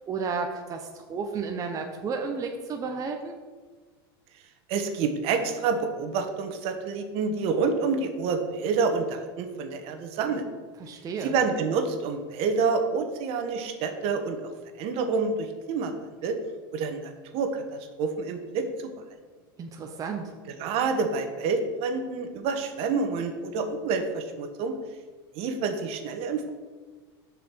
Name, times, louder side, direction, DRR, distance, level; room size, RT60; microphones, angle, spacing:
voice 1, 0.1-3.3 10.8-11.3 19.6-20.3, right 5 dB, 25° right, 3 dB, 0.8 m, -32 dB
voice 2, 4.7-10.5 11.2-14.4 14.8-15.9 16.2-16.4 16.7-18.9 20.5-24.7 25.3-26.5, right 4 dB, 50° right, 6 dB, 1.3 m, -28 dB
6.6 x 5.0 x 6.3 m, 1.4 s
supercardioid pair, 120°, 13 cm